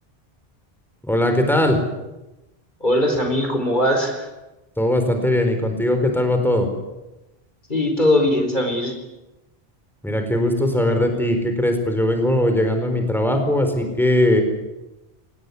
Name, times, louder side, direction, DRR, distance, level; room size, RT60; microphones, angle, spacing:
voice 1, 1.0-1.8 4.8-6.7 10.0-14.4, left 1 dB, ahead, 5 dB, 4.4 m, -20 dB
voice 2, 2.8-4.3 7.7-8.9, left 1 dB, 50° left, 4 dB, 4.7 m, -20 dB
26.0 x 19.5 x 9.8 m, 1.0 s
omnidirectional pair, 1.1 m